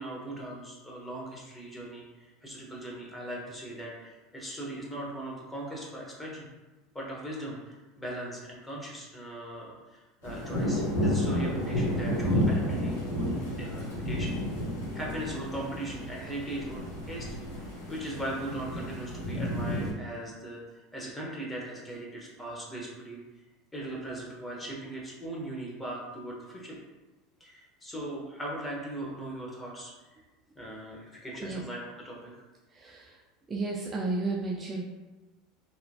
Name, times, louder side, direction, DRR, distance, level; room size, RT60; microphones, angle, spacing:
voice 1, 0.0-6.5 6.9-17.3 17.9-23.2 23.7-26.8 27.4-30.2 30.6-32.3, right 1 dB, 10° left, -4 dB, 0.9 m, -39 dB
sound 1, 10.2-19.9, equal, 85° left, 1.0 m, -31 dB
voice 2, 32.7-33.2 33.5-34.8, right 3 dB, 25° right, -2 dB, 0.3 m, -32 dB
2.9 x 2.2 x 2.6 m, 1.2 s
hypercardioid pair, 90°, 0 cm